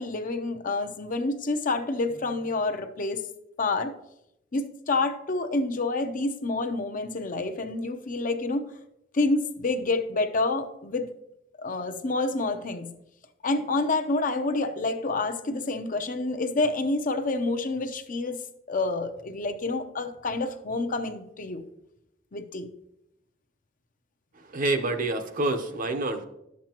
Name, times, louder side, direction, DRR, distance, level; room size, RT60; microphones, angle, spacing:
voice 1, 0.0-3.2 3.6-3.9 4.5-8.7 9.1-11.1 11.6-12.9 13.4-18.4 18.7-21.6 22.3-22.7, left 3 dB, 45° left, 7 dB, 0.7 m, -28 dB
voice 2, 24.5-26.3, right 2 dB, 45° right, 7 dB, 0.8 m, -27 dB
11.5 x 7.4 x 2.9 m, 0.84 s
head